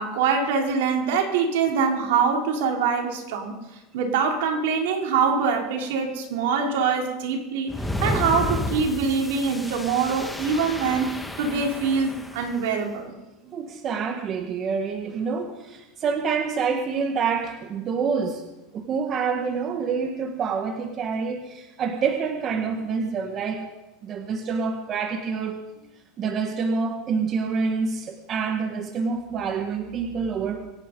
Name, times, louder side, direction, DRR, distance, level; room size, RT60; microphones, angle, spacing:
voice 1, 0.0-3.6 3.9-7.7 8.0-13.1, right 5 dB, 75° right, 2 dB, 3.8 m, -24 dB
sound 1, 7.7-12.6, left 1 dB, 5° left, 1.7 m, -31 dB
voice 2, 13.4-18.4 18.7-23.7 24.0-25.6 26.2-30.7, right 5 dB, 40° right, 5 dB, 1.8 m, -27 dB
25.5 x 9.9 x 5.4 m, 1.0 s
supercardioid pair, 115°, 0 cm